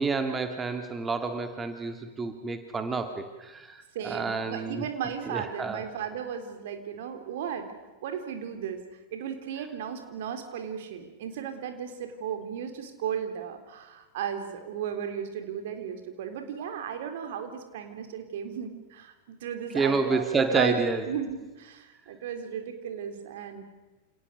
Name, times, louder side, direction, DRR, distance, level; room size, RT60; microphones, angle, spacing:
voice 1, 0.0-4.8 5.3-5.8 19.7-21.1, right 4 dB, 15° right, 6 dB, 2.6 m, -29 dB
voice 2, 3.9-7.8 8.0-8.8 9.1-23.6, right 8 dB, 55° right, 7 dB, 3.8 m, -35 dB
29.0 x 29.0 x 6.8 m, 1.2 s
figure-of-eight pair, 90°, 0 cm